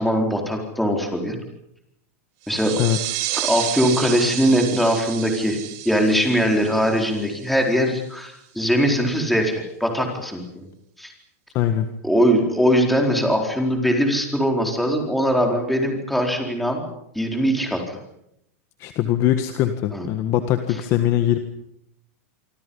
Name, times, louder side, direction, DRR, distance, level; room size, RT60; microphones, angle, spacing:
voice 1, 0.0-1.4 2.5-2.7 3.4-5.6 5.8-10.7 11.0-11.1 12.0-16.8 17.1-18.0 19.9-20.1, equal, ahead, 2 dB, 4.4 m, -21 dB
sound 1, 2.4-7.8, right 15 dB, 45° right, 2.9 m, -31 dB
voice 2, 11.5-11.9 18.8-21.4, left 12 dB, 35° left, 8 dB, 1.6 m, -21 dB
26.5 x 26.0 x 5.6 m, 0.77 s
supercardioid pair, 155°, 8 cm